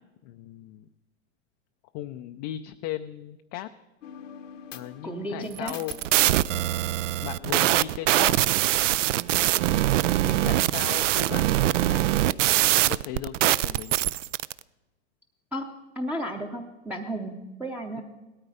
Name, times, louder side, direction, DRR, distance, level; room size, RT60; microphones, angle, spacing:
voice 1, 0.2-0.9 1.9-3.7 4.7-6.0 7.2-8.3 9.7-12.2 12.7-14.0, left 13 dB, 30° left, 7 dB, 0.4 m, -37 dB
sound 1, 4.0-7.6, left 8 dB, 90° left, 1.3 m, -46 dB
voice 2, 5.0-5.7 15.5-15.7 16.0-18.0, right 1 dB, 5° right, 1 dB, 0.7 m, -33 dB
sound 2, 5.6-14.5, right 14 dB, 80° right, 0.5 m, -23 dB
17.5 x 13.0 x 4.9 m, 1.1 s
hypercardioid pair, 135°, 37 cm